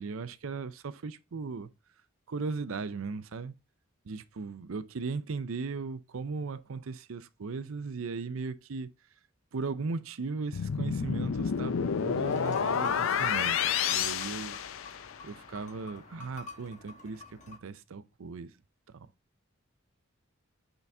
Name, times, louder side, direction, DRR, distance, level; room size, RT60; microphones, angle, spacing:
voice 1, 0.0-1.7 2.3-3.6 4.0-8.9 9.5-14.6 15.2-18.5 18.9-19.1, right 4 dB, 70° right, 0.5 m, -37 dB
sound 1, 10.5-15.3, left 7 dB, 70° left, 0.5 m, -29 dB
sound 2, 12.2-17.6, left 3 dB, 35° left, 1.1 m, -47 dB
8.3 x 3.9 x 3.3 m
head